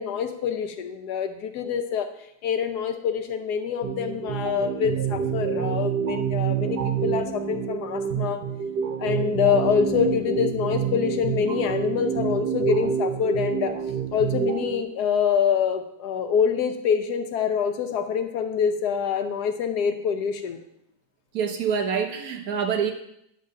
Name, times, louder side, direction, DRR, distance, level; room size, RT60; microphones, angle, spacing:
voice 1, 0.0-2.1 2.4-8.4 9.0-13.7 14.1-20.6, left 7 dB, 75° left, 7 dB, 1.3 m, -25 dB
sound 1, 3.8-14.8, right 7 dB, 85° right, 1.4 m, -27 dB
voice 2, 21.3-22.9, right 6 dB, 65° right, 5 dB, 1.3 m, -26 dB
9.0 x 3.8 x 6.4 m, 0.75 s
omnidirectional pair, 1.7 m